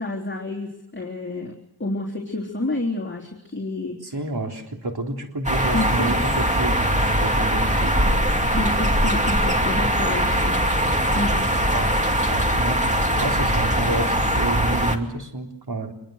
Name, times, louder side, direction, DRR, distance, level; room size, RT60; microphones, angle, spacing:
voice 1, 0.0-1.5 1.8-4.1 5.7-6.1 8.5-10.5 11.1-11.5, left 2 dB, 25° left, -2 dB, 3.6 m, -29 dB
voice 2, 4.0-8.4 11.5-12.9 13.2-15.9, right 2 dB, 65° right, 2 dB, 3.8 m, -30 dB
sound 1, 5.4-15.0, equal, 15° right, 2.5 m, -21 dB
25.5 x 23.0 x 6.6 m, 0.83 s
wide cardioid pair, 70°, 42 cm